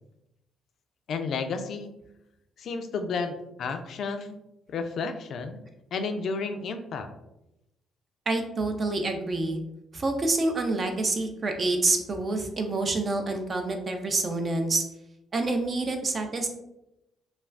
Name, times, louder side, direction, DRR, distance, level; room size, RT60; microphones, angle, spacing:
voice 1, 1.1-1.9 2.6-4.3 4.7-5.6 5.9-7.1, left 4 dB, 65° left, 7 dB, 0.3 m, -32 dB
voice 2, 8.3-9.6 9.9-14.8 15.3-16.5, right 2 dB, 40° right, 5 dB, 0.5 m, -27 dB
2.4 x 2.3 x 3.3 m, 0.87 s
cardioid pair, 90°, 0 cm